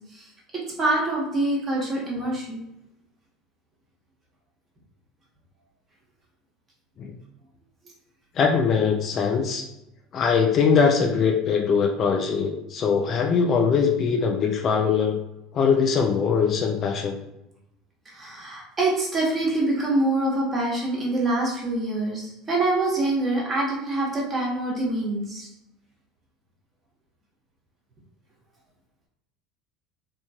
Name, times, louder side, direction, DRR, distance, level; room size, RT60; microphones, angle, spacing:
voice 1, 0.1-2.6 18.0-25.5, right 2 dB, 30° right, -3 dB, 1.2 m, -25 dB
voice 2, 8.4-9.6 10.1-15.2 15.5-17.2, left 6 dB, 45° left, 3 dB, 0.4 m, -22 dB
3.0 x 2.2 x 2.8 m, 0.87 s
hypercardioid pair, 85°, 0 cm